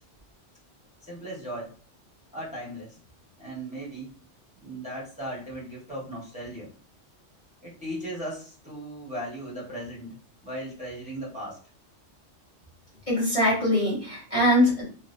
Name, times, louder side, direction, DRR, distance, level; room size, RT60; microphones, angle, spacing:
voice 1, 1.0-1.7 2.3-3.0 3.4-4.1 4.6-6.7 7.6-10.1 10.4-11.6, right 1 dB, 5° right, -8 dB, 1.5 m, -37 dB
voice 2, 13.1-14.8, left 1 dB, 25° left, -8 dB, 1.4 m, -22 dB
3.3 x 3.0 x 2.7 m, 0.42 s
omnidirectional pair, 1.3 m